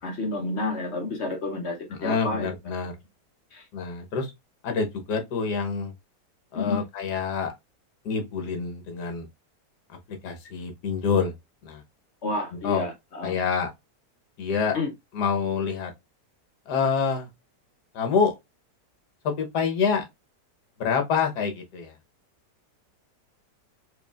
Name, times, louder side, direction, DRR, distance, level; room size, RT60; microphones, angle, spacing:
voice 1, 0.0-2.5 3.5-3.7 6.5-6.9 12.2-13.5 14.7-14.9, left 2 dB, 50° left, 0.9 m, -30 dB
voice 2, 2.0-2.9 3.7-4.3 4.6-5.9 6.5-7.5 8.0-9.3 10.2-11.3 11.6-11.8 12.6-12.8 13.2-13.7 14.4-14.8 15.1-15.9 16.7-17.3 17.9-18.4 19.2-20.1 20.8-21.9, left 5 dB, 70° left, 1.5 m, -26 dB
4.5 x 3.2 x 2.4 m
omnidirectional pair, 1.8 m